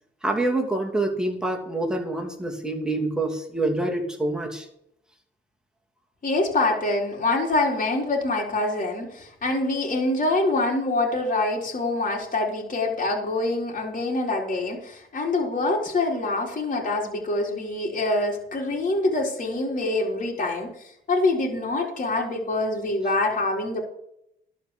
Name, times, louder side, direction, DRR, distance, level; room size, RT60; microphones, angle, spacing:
voice 1, 0.2-4.7, right 2 dB, 5° right, 1 dB, 2.8 m, -26 dB
voice 2, 6.2-20.7 21.1-23.8, left 2 dB, 40° left, -2 dB, 4.1 m, -25 dB
12.0 x 5.3 x 8.4 m, 0.75 s
cardioid pair, 90°, 20 cm